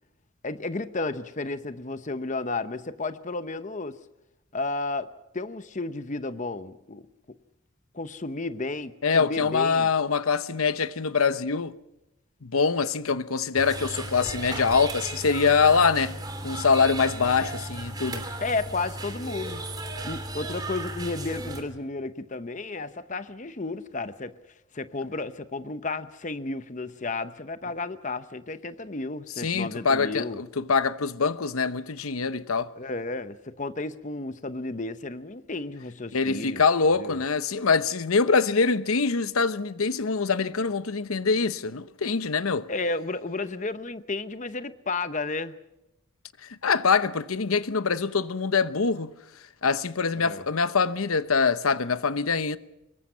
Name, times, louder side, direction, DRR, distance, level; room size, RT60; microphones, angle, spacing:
voice 1, 0.4-4.0 4.5-5.1 5.3-7.0 7.9-9.9 18.4-19.6 20.0-24.3 24.7-30.4 32.8-36.6 37.0-37.2 42.7-45.6 50.2-50.4, left 3 dB, 35° left, 0.8 m, -32 dB
voice 2, 9.0-11.7 12.4-16.1 16.4-18.2 29.4-32.7 36.1-42.7 46.6-49.1 49.6-52.6, left 5 dB, 80° left, 0.9 m, -24 dB
sound 1, 13.6-21.6, right 2 dB, 20° right, 3.1 m, -35 dB
25.5 x 22.0 x 5.6 m
head